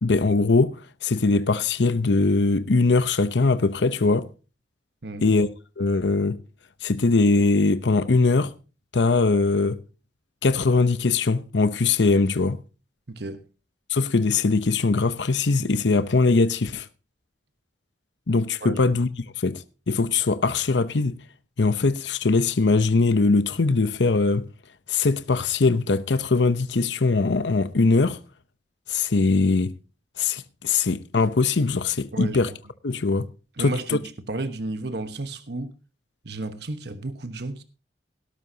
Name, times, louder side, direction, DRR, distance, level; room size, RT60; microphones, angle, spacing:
voice 1, 0.0-4.3 5.2-5.5 5.8-6.4 6.8-8.5 8.9-9.8 10.4-12.6 13.9-16.9 18.3-19.1 19.4-21.2 21.6-24.5 24.9-28.2 28.9-29.8 30.2-32.5 32.8-33.3 33.6-34.0, left 3 dB, 85° left, 0.8 m, -21 dB
voice 2, 13.1-13.4 18.6-18.8 32.1-32.4 33.6-35.7 36.2-37.6, right 2 dB, 70° right, 1.2 m, -32 dB
17.5 x 12.5 x 2.8 m
head